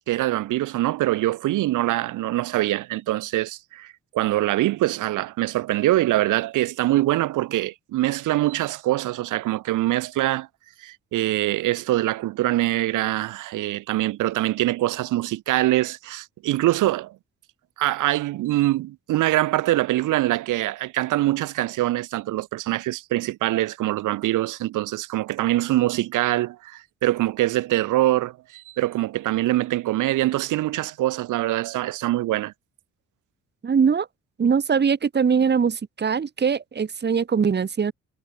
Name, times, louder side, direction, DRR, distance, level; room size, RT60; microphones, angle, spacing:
voice 1, 0.1-10.5 10.8-17.1 17.8-32.5, right 16 dB, 85° right, 1.7 m, -24 dB
voice 2, 33.6-34.1 34.4-37.9, right 6 dB, 35° right, 1.6 m, -21 dB
cardioid pair, 90°, 30 cm